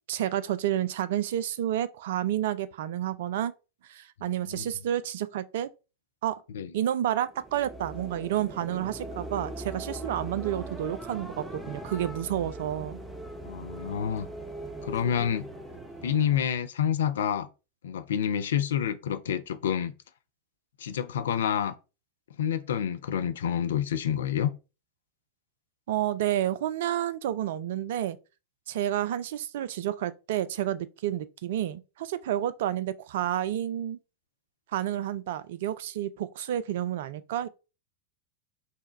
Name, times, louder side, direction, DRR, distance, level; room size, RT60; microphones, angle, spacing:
voice 1, 0.1-3.5 3.9-5.7 6.2-6.4 6.7-13.0 25.9-28.2 28.7-34.0 34.7-37.5, right 11 dB, 55° right, 0.3 m, -30 dB
voice 2, 4.2-4.7 6.5-6.7 13.4-14.3 14.8-15.5 16.0-17.5 17.8-19.9 20.8-21.7 22.4-24.5, left 9 dB, 60° left, 0.4 m, -28 dB
sound 1, 7.2-16.6, right 1 dB, 10° right, 0.7 m, -40 dB
5.3 x 2.2 x 3.0 m
figure-of-eight pair, 90°, 0 cm